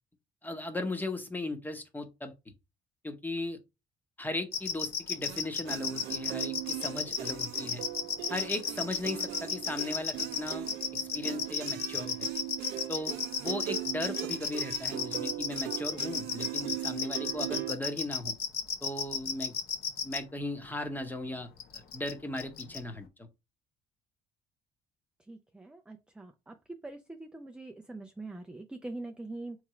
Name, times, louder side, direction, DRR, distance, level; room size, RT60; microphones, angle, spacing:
voice 1, 0.4-2.3 3.0-3.6 4.2-7.8 8.3-10.7 11.0-12.3 12.9-18.3 18.8-19.5 20.0-21.5 21.7-23.3, left 2 dB, 10° left, 0.9 m, -37 dB
sound 1, 4.5-20.2 21.6-22.1 22.4-22.8, left 7 dB, 60° left, 0.9 m, -33 dB
sound 2, 5.3-17.8, right 15 dB, 80° right, 0.4 m, -39 dB
voice 2, 25.3-29.6, right 2 dB, 5° right, 0.4 m, -43 dB
3.5 x 3.1 x 4.7 m
cardioid pair, 110°, 17 cm